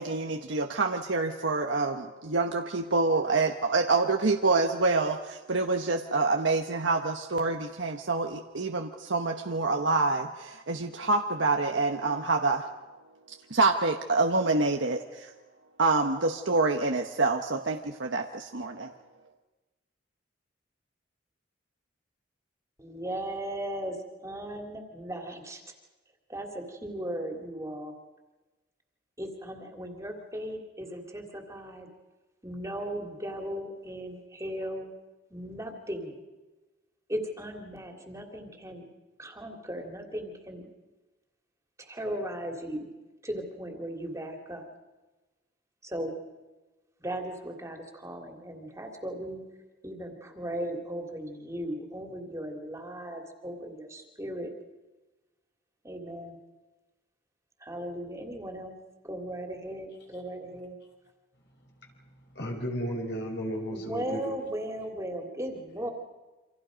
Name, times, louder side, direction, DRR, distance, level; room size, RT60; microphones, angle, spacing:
voice 1, 0.0-12.7 13.5-15.3 15.8-18.9, right 3 dB, 70° right, 3 dB, 1.2 m, -27 dB
voice 2, 22.8-24.0 24.2-25.6 26.3-27.9 29.2-31.9 32.4-34.9 35.3-36.2 37.1-38.9 39.2-40.7 41.8-42.9 43.2-44.7 45.8-46.1 47.0-49.4 49.8-54.5 55.8-56.4 57.6-58.8 59.0-60.8 63.7-65.9, right 1 dB, 15° right, 2 dB, 2.9 m, -37 dB
voice 3, 62.3-64.2, equal, 60° left, 1 dB, 5.1 m, -33 dB
28.5 x 26.0 x 5.2 m, 1.2 s
head